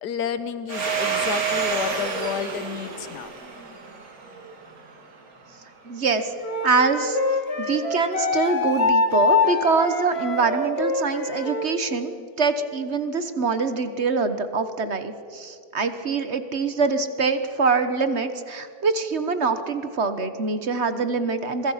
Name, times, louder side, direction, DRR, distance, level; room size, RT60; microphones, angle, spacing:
voice 1, 0.0-3.3, left 8 dB, 80° left, 12 dB, 1.6 m, -30 dB
Domestic sounds home sounds, 0.7-5.1, right 5 dB, 60° right, 2.6 m, -29 dB
voice 2, 5.8-6.3 6.6-7.2 7.6-21.7, right 4 dB, 45° right, 10 dB, 1.4 m, -24 dB
Wind instrument woodwind instrument, 6.4-11.7, left 3 dB, 40° left, 2.5 m, -24 dB
26.0 x 23.5 x 5.8 m, 2.5 s
omnidirectional pair, 1.7 m